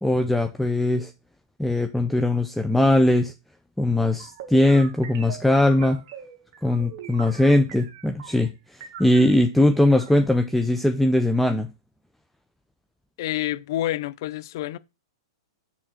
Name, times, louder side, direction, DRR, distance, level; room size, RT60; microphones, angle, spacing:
voice 1, 0.0-1.1 1.6-3.3 3.8-6.0 6.6-8.5 9.0-11.7, left 1 dB, 5° left, 0.5 m, -20 dB
sound 1, 4.1-8.5 8.8-10.1, right 8 dB, 55° right, 1.3 m, -42 dB
voice 2, 13.2-14.8, left 14 dB, 60° left, 0.5 m, -28 dB
6.9 x 3.7 x 6.4 m
hypercardioid pair, 125°, 3 cm